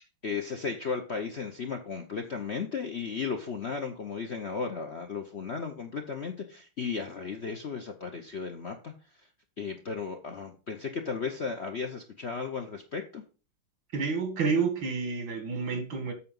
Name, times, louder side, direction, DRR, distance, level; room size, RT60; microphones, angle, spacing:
voice 1, 0.2-9.3 9.6-13.2, left 5 dB, 50° left, 0.8 m, -35 dB
voice 2, 13.9-16.1, right 5 dB, 80° right, 2.4 m, -29 dB
8.4 x 5.2 x 5.3 m
omnidirectional pair, 2.1 m